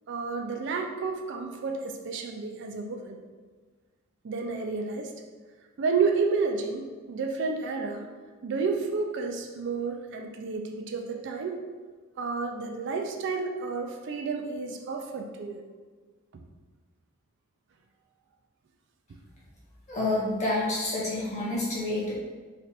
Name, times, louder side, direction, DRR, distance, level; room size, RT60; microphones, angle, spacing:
voice 1, 0.1-3.2 4.2-5.1 5.8-8.0 8.4-11.6 12.2-15.6 16.3-16.4, right 4 dB, 55° right, 3 dB, 0.4 m, -31 dB
voice 2, 19.9-22.1, left 2 dB, 35° left, -6 dB, 1.2 m, -28 dB
3.3 x 2.5 x 4.2 m, 1.4 s
head